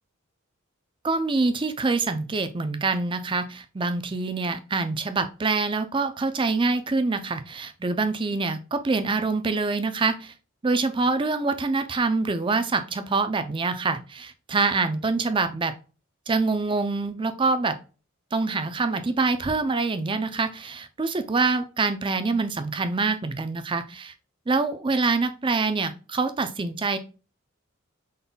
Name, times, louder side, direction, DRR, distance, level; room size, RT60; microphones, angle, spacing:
voice 1, 1.0-10.3 10.6-15.7 16.3-17.8 18.3-24.1 24.5-27.0, right 3 dB, 25° right, 10 dB, 0.4 m, -25 dB
5.3 x 4.0 x 2.2 m, 0.35 s
head